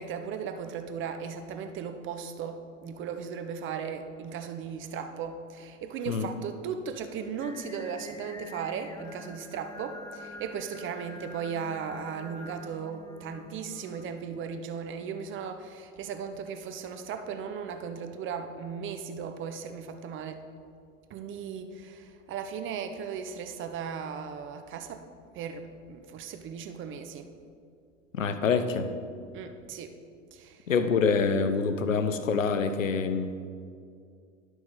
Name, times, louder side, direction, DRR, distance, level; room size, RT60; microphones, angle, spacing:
voice 1, 0.0-20.5 21.1-25.0 25.3-27.3 29.3-30.0 30.3-30.7, right 6 dB, 30° right, 8 dB, 0.7 m, -37 dB
Singing, 7.4-14.0, left 2 dB, 10° left, 0.6 m, -47 dB
voice 2, 28.1-28.9 30.7-33.5, left 5 dB, 90° left, 9 dB, 0.7 m, -26 dB
10.5 x 6.1 x 3.9 m, 2.3 s
hypercardioid pair, 90°, 38 cm